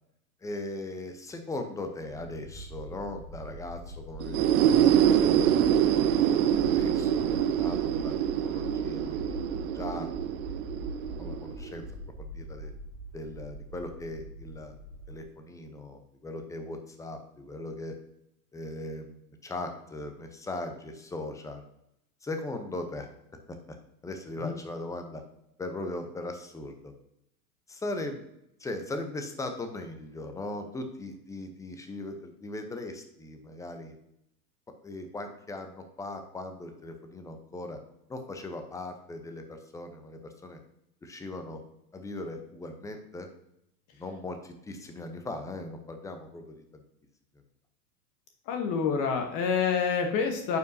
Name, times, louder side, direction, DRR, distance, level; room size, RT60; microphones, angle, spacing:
voice 1, 0.4-5.9 6.6-7.3 7.6-8.1 8.4-9.3 9.7-10.1 11.2-11.8 12.2-12.7 13.1-14.7 15.1-18.0 18.5-21.6 22.2-23.1 23.5-23.6 24.0-25.2 25.6-26.9 27.7-28.2 28.6-34.0 34.8-37.8 38.1-40.6 41.0-41.6 41.9-43.3 43.9-46.6, left 2 dB, 5° left, 6 dB, 0.6 m, -39 dB
sound 1, 2.1-15.2, equal, 25° right, 2.2 m, -42 dB
sound 2, 4.2-11.8, right 10 dB, 60° right, 0.7 m, -25 dB
voice 2, 48.5-50.6, left 6 dB, 40° left, 4 dB, 1.1 m, -27 dB
9.1 x 5.4 x 2.7 m, 0.80 s
hypercardioid pair, 115°, 49 cm